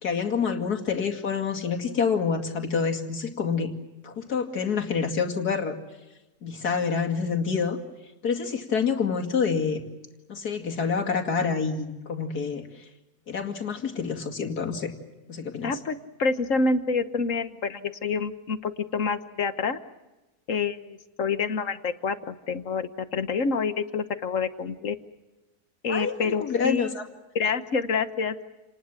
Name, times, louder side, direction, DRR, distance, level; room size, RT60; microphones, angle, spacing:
voice 1, 0.0-3.7 4.0-5.8 6.4-7.8 8.2-9.8 10.3-12.9 13.3-14.9 15.3-15.8 25.9-27.1, left 5 dB, 90° left, 3 dB, 2.9 m, -27 dB
voice 2, 15.6-19.8 20.5-25.0 25.8-26.9 27.3-28.3, left 4 dB, 60° left, 11 dB, 1.5 m, -27 dB
29.0 x 20.0 x 7.5 m, 1.1 s
omnidirectional pair, 1.6 m